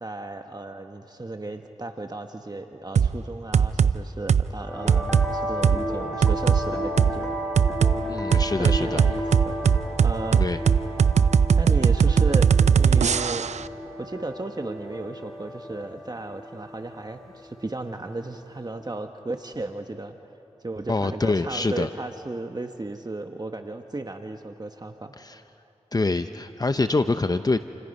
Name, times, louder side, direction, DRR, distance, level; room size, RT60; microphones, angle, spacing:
voice 1, 0.0-7.3 8.5-9.6 10.0-10.7 11.0-11.1 11.5-13.4 14.0-20.2 20.6-25.1, right 2 dB, 35° right, 5 dB, 1.3 m, -35 dB
sound 1, 3.0-3.1 3.5-3.9 4.3-4.5 4.9-5.3 5.6-5.8 6.2-6.6 7.0-7.1 7.6-8.0 8.3-13.6, right 7 dB, 75° right, 0.5 m, -18 dB
sound 2, 4.6-18.7, equal, 5° left, 7.4 m, -34 dB
voice 2, 8.1-9.0 10.4-10.6 20.9-21.9 25.2-25.4 25.9-27.6, left 3 dB, 35° left, 10 dB, 0.7 m, -25 dB
29.0 x 29.0 x 5.5 m, 2.8 s
cardioid pair, 40°, 12 cm